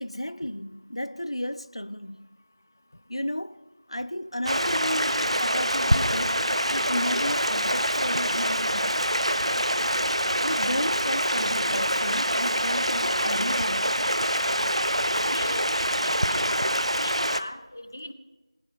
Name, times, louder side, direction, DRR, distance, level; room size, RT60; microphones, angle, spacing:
voice 1, 0.0-2.3 3.1-3.6 3.9-6.4 6.7-9.0 10.4-14.1, left 1 dB, 70° left, 0.7 m, -33 dB
Stream, 4.4-17.4, equal, 85° right, 1.0 m, -25 dB
voice 2, 15.3-16.4 17.0-18.1, left 1 dB, 25° left, 0.6 m, -39 dB
19.5 x 9.9 x 5.7 m
figure-of-eight pair, 175°, 3 cm